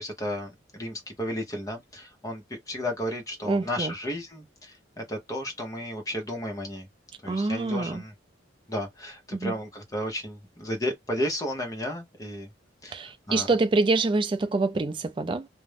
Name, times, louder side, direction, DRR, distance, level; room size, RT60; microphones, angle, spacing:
voice 1, 0.0-6.9 7.2-8.1 8.7-12.5 12.8-13.5, equal, 20° left, 0.7 m, -33 dB
voice 2, 3.4-3.9 7.3-8.0 9.3-9.5 12.9-15.5, right 3 dB, 25° right, 0.3 m, -26 dB
2.5 x 2.1 x 3.2 m
head